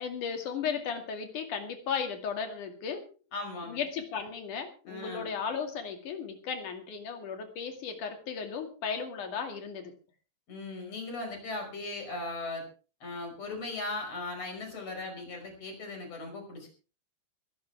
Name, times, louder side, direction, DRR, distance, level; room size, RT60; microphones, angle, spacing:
voice 1, 0.0-3.0 3.6-9.9, left 6 dB, 50° left, 5 dB, 3.4 m, -35 dB
voice 2, 3.3-3.8 4.9-5.3 10.5-12.6 13.0-16.7, left 2 dB, 35° left, 3 dB, 6.3 m, -38 dB
24.0 x 12.0 x 3.5 m, 0.36 s
omnidirectional pair, 5.1 m